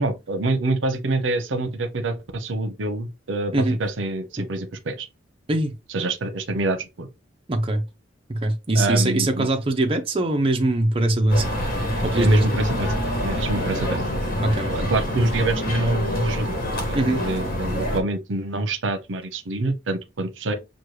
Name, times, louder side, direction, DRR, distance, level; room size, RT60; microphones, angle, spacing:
voice 1, 0.0-5.1 5.9-7.1 8.7-9.5 12.1-12.9 13.2-14.0 14.5-16.6 16.8-20.5, right 2 dB, 80° right, 0.7 m, -26 dB
voice 2, 7.5-7.8 8.3-11.4 12.0-12.4 14.4-14.9 16.9-17.2, right 1 dB, 30° right, 0.6 m, -21 dB
sound 1, 11.3-18.0, equal, 50° left, 1.2 m, -26 dB
6.1 x 2.2 x 3.2 m
head